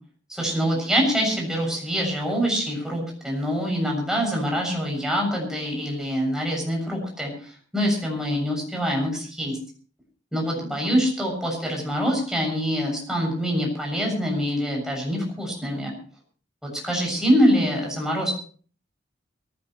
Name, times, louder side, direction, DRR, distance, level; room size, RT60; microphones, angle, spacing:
voice 1, 0.3-9.6 10.3-15.9 16.6-18.3, equal, 5° right, -1 dB, 7.2 m, -25 dB
23.0 x 16.0 x 3.2 m, 0.42 s
head